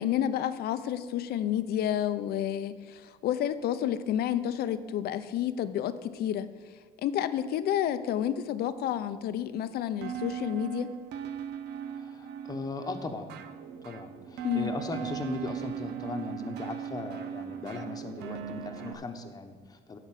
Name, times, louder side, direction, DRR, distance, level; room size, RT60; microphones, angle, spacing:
voice 1, 0.0-6.5 7.0-10.9 14.4-14.7, left 10 dB, 70° left, 13 dB, 0.6 m, -30 dB
sound 1, 10.0-18.9, right 9 dB, 80° right, 0.7 m, -39 dB
voice 2, 12.0-13.4 13.8-20.0, left 3 dB, 20° left, 5 dB, 1.0 m, -38 dB
11.0 x 4.5 x 7.5 m, 1.5 s
cardioid pair, 110°, 17 cm